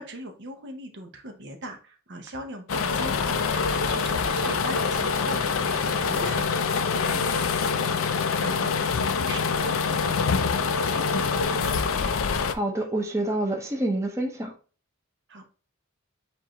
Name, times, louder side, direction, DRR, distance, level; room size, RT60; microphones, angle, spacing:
voice 1, 0.0-11.7 15.3-15.4, right 1 dB, 60° right, 0.9 m, -40 dB
sound 1, 2.7-12.5, left 5 dB, 70° left, 0.4 m, -25 dB
voice 2, 12.5-14.6, right 1 dB, 15° right, 0.7 m, -27 dB
7.1 x 2.5 x 2.9 m
head